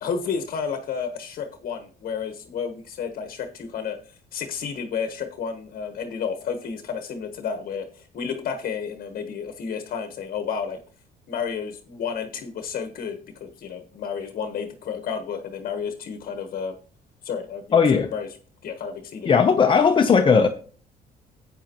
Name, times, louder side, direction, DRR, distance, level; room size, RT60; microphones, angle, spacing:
voice 1, 0.0-4.0 4.3-10.8 11.3-16.8 17.2-18.3 18.6-19.3, left 6 dB, 55° left, 1.2 m, -31 dB
voice 2, 17.7-18.1 19.3-20.5, left 6 dB, 30° left, 0.8 m, -17 dB
12.0 x 8.6 x 3.0 m
cardioid pair, 110°, 17 cm